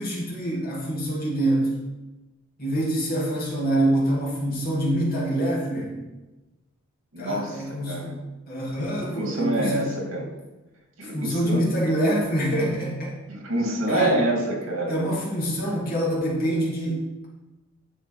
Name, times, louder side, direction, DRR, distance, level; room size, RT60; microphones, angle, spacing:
voice 1, 0.0-1.7 2.6-6.0 7.2-8.1 8.5-9.9 11.1-13.1 13.9-14.2 14.9-17.3, right 1 dB, 45° left, -5 dB, 2.6 m, -25 dB
voice 2, 7.1-8.1 9.2-10.3 11.0-11.6 13.3-15.0, right 1 dB, 75° right, 0 dB, 2.7 m, -26 dB
10.5 x 5.6 x 5.0 m, 1.1 s
head